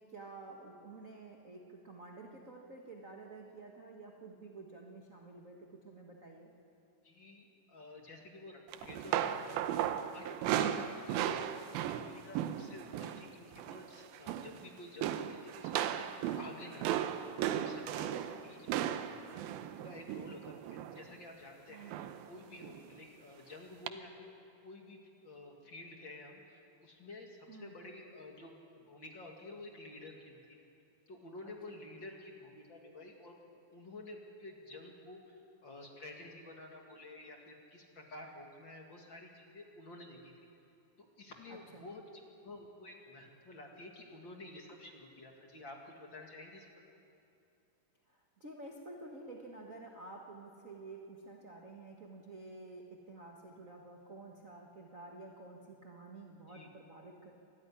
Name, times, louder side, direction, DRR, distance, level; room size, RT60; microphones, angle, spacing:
voice 1, 0.0-6.5 10.5-10.9 18.0-18.4 21.7-22.0 27.5-27.7 31.4-31.5 41.5-41.9 48.1-57.3, right 2 dB, 50° right, 0 dB, 0.9 m, -51 dB
voice 2, 7.0-9.5 10.1-17.2 17.5-19.0 19.3-24.3 24.6-30.6 31.1-33.4 33.7-40.3 41.2-46.7 56.5-56.7, left 2 dB, 35° left, 1 dB, 2.3 m, -51 dB
sound 1, 8.7-13.3 13.5-13.9 14.1-14.6 15.0-21.0 21.9-22.3 22.6-22.8 23.9-24.0, right 10 dB, 85° right, 2.7 m, -36 dB
25.5 x 14.5 x 10.0 m, 2.6 s
omnidirectional pair, 4.2 m